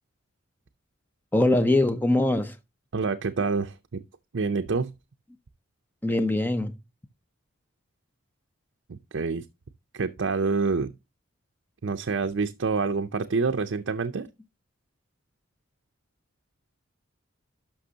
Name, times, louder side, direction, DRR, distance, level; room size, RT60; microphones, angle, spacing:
voice 1, 1.3-2.6 6.0-6.8, left 1 dB, 10° left, 0.6 m, -22 dB
voice 2, 2.9-4.0 4.3-4.9 8.9-9.5 9.9-10.9 11.8-14.3, right 4 dB, 65° right, 0.6 m, -27 dB
11.5 x 6.1 x 2.8 m
head